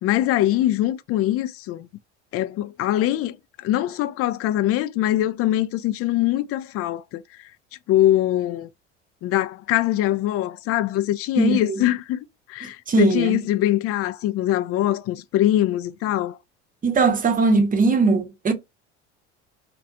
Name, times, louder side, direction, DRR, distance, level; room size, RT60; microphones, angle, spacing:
voice 1, 0.0-1.9 2.3-3.4 3.6-7.2 7.9-8.7 9.2-12.2 12.5-16.4, left 13 dB, 40° left, 0.4 m, -22 dB
voice 2, 11.4-11.8 12.9-13.4 16.8-18.5, right 4 dB, 25° right, 0.7 m, -20 dB
2.3 x 2.2 x 2.7 m
hypercardioid pair, 70°, 35 cm